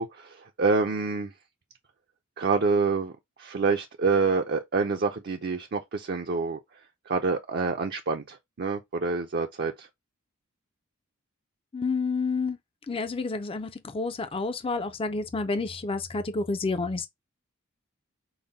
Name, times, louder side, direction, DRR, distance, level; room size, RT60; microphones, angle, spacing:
voice 1, 0.0-1.3 2.4-3.1 3.4-6.6 7.1-9.9, right 4 dB, 50° right, 0.5 m, -27 dB
voice 2, 11.7-12.6 12.9-17.1, left 3 dB, 25° left, 0.4 m, -29 dB
5.4 x 2.2 x 3.9 m
head